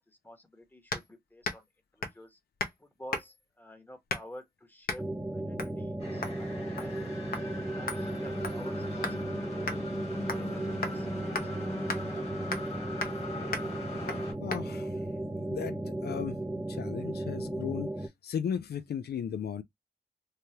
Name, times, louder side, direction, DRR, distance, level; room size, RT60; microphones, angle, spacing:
voice 1, 0.0-1.7 1.9-2.4 2.8-5.0 5.3-7.2 7.5-9.6 9.9-11.9, equal, 10° left, 0.9 m, -50 dB
sound 1, 0.9-1.1 1.4-1.7 2.0-2.2 2.6-2.8 3.1-3.5 4.1-4.4 4.9-5.0 5.6-5.8 6.2-6.4 6.8-7.0 7.3-7.5 7.9-9.2 9.7-9.8 10.3-10.5 10.8-11.0 11.3-11.5 11.9-12.0 12.5-12.7 13.0-13.2 13.5-13.7 14.1-14.2 14.5-14.6, left 3 dB, 65° left, 0.8 m, -36 dB
sound 2, 5.0-18.1, right 1 dB, 10° right, 0.5 m, -35 dB
sound 3, 6.0-14.3, left 2 dB, 40° left, 1.5 m, -41 dB
voice 2, 14.4-15.0 15.4-16.4 16.7-19.6, left 8 dB, 90° left, 0.4 m, -36 dB
3.3 x 2.2 x 2.8 m
wide cardioid pair, 90°, 16 cm